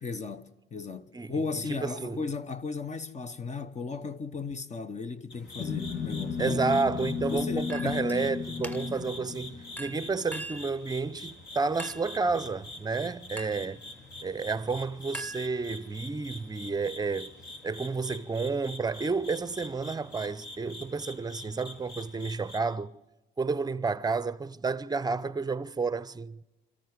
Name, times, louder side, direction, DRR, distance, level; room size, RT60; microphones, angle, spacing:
voice 1, 0.0-6.6 7.2-8.0, left 4 dB, 35° left, 0.9 m, -36 dB
voice 2, 1.7-2.2 6.4-13.8 14.2-17.3 17.6-22.9 23.4-26.4, right 4 dB, 20° right, 0.6 m, -31 dB
sound 1, 5.3-22.6, left 2 dB, 65° left, 3.9 m, -45 dB
sound 2, 5.6-10.2, left 5 dB, 90° left, 1.7 m, -34 dB
Chink clink, 7.7-8.2 8.6-9.1 9.8-10.7 11.8-12.2 13.4-13.7 15.1-15.9, right 2 dB, 10° left, 1.3 m, -41 dB
26.0 x 13.5 x 9.6 m
cardioid pair, 90°, 20 cm